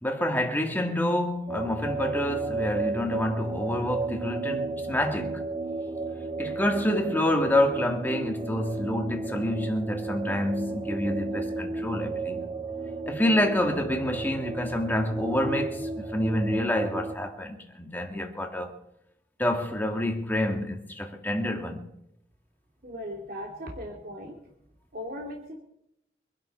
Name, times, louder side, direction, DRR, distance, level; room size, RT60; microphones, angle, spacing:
voice 1, 0.0-5.4 6.4-12.5 13.1-18.8 19.4-21.8, left 1 dB, 10° left, 2.1 m, -28 dB
sound 1, 1.5-17.2, right 3 dB, 25° right, 1.7 m, -33 dB
voice 2, 22.8-24.4 24.9-25.5, equal, 55° right, 2.7 m, -38 dB
25.0 x 11.5 x 4.4 m
head